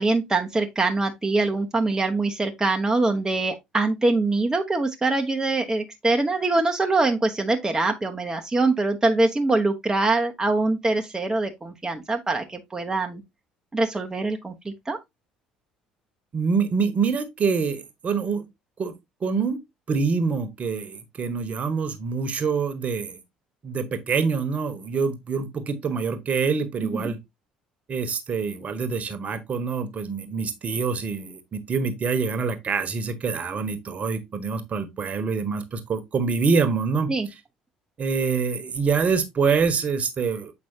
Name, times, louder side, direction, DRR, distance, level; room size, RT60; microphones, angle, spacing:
voice 1, 0.0-13.2 13.7-15.0 26.9-27.1 37.1-37.3, right 2 dB, 15° right, 1.0 m, -24 dB
voice 2, 16.3-18.4 18.8-18.9 19.2-19.6 19.9-23.2 23.6-27.2 27.9-37.1 38.0-40.5, right 5 dB, 40° right, 1.4 m, -25 dB
7.9 x 5.2 x 2.7 m
figure-of-eight pair, 55°, 4 cm